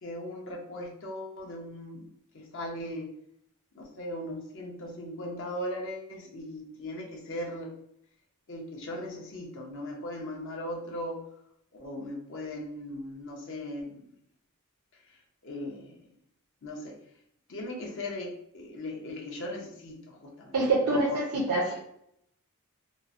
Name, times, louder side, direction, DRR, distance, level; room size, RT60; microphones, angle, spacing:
voice 1, 0.0-2.1 2.3-3.1 3.7-7.7 8.5-11.2 11.8-14.1 15.4-16.0 16.6-17.0 17.5-20.6 20.8-21.2 21.6-21.8, left 1 dB, 60° left, -1 dB, 0.7 m, -38 dB
voice 2, 20.5-21.8, right 2 dB, 80° right, -4 dB, 0.6 m, -26 dB
2.9 x 2.0 x 2.4 m, 0.70 s
head